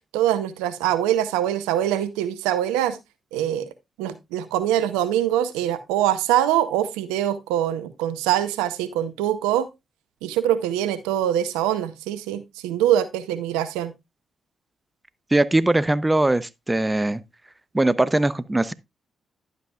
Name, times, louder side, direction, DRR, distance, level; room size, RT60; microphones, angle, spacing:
voice 1, 0.1-3.0 3.3-3.6 4.0-9.7 10.2-13.9, right 11 dB, 80° right, 0.7 m, -23 dB
voice 2, 15.3-17.2 17.7-18.7, right 2 dB, 20° right, 0.7 m, -21 dB
11.5 x 8.3 x 2.4 m
hypercardioid pair, 40°, 0 cm